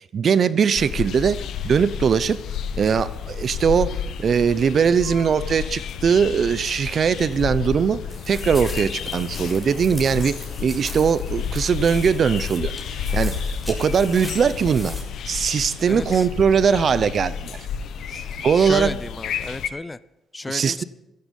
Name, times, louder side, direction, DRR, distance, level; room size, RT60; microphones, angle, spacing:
voice 1, 0.0-2.4 2.8-8.0 8.3-15.0 15.3-17.7 18.1-18.9 20.5-20.8, right 6 dB, 50° right, 0.7 m, -21 dB
sound 1, 0.8-19.7, left 7 dB, 75° left, 1.2 m, -31 dB
sound 2, 8.1-15.0, left 1 dB, ahead, 6.8 m, -40 dB
voice 2, 15.9-16.3 18.6-20.0 20.3-20.8, left 2 dB, 20° left, 0.6 m, -32 dB
16.5 x 14.5 x 5.4 m
cardioid pair, 90°, 0 cm